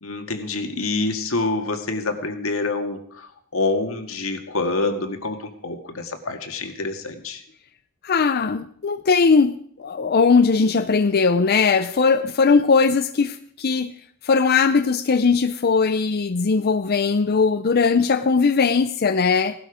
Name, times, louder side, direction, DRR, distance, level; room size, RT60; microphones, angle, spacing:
voice 1, 0.0-7.4, left 3 dB, 85° left, 6 dB, 1.9 m, -26 dB
voice 2, 8.0-13.9 14.2-19.5, left 5 dB, 50° left, 10 dB, 0.5 m, -19 dB
17.5 x 12.0 x 5.0 m, 0.63 s
head